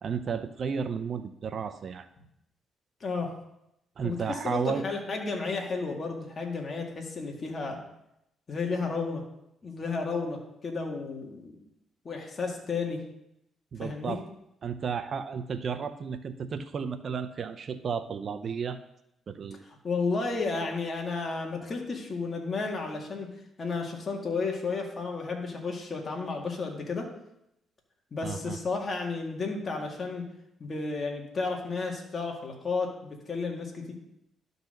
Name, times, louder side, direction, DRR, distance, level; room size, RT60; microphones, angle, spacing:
voice 1, 0.0-2.1 4.0-4.8 13.7-14.2 14.6-18.8 19.3-19.6 28.2-28.6, right 6 dB, 50° right, 10 dB, 0.5 m, -33 dB
voice 2, 3.0-3.3 4.0-7.8 8.5-9.2 9.6-11.6 12.0-13.0 13.8-14.2 19.8-23.3 23.6-27.1 28.1-30.2 30.6-33.9, left 4 dB, 40° left, 0 dB, 2.0 m, -32 dB
12.0 x 4.0 x 6.6 m, 0.82 s
cardioid pair, 90°, 0 cm